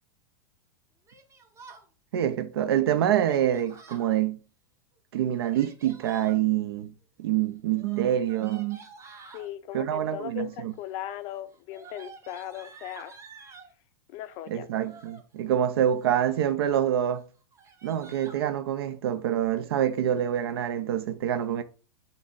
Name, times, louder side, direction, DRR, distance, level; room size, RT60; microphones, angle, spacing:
Yell, 1.1-1.9 3.2-4.1 5.3-6.4 7.7-9.5 10.3-10.8 11.1-13.7 14.6-15.2 15.8-16.3 16.7-16.8 17.1-17.2 17.5-18.4, right 4 dB, 20° right, 0.7 m, -49 dB
voice 1, 2.1-4.4 5.1-6.9 7.2-8.8 9.7-10.7 14.5-17.2 17.8-21.6, right 10 dB, 75° right, 0.4 m, -26 dB
voice 2, 9.3-13.2 14.1-14.7, left 12 dB, 45° left, 0.3 m, -38 dB
2.6 x 2.5 x 3.8 m
hypercardioid pair, 110°, 13 cm